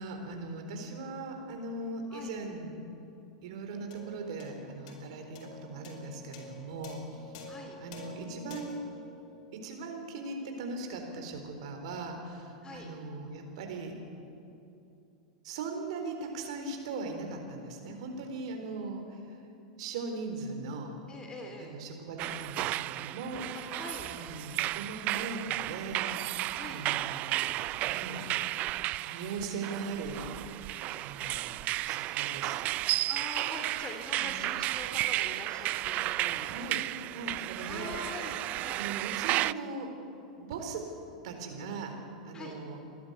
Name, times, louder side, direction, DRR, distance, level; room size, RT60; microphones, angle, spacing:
voice 1, 0.0-2.8 3.4-7.3 7.8-8.7 9.5-14.0 15.4-19.4 19.8-21.0 21.6-23.8 24.1-27.6 27.9-28.3 29.0-30.3 31.0-32.7 34.1-34.5 36.2-38.0 38.8-39.9 40.4-40.9 41.2-42.8, right 3 dB, 65° right, 4 dB, 3.9 m, -39 dB
sound 1, 3.9-10.5, left 2 dB, 55° left, 4.7 m, -49 dB
voice 2, 7.5-7.8 12.6-12.9 21.1-21.7 23.5-24.1 26.5-26.8 33.1-36.6 37.6-38.8 42.3-42.5, left 2 dB, 20° left, 2 dB, 3.0 m, -44 dB
sound 2, 22.2-39.5, right 17 dB, 45° right, 0.4 m, -33 dB
29.0 x 12.0 x 8.2 m, 2.8 s
hypercardioid pair, 95°, 4 cm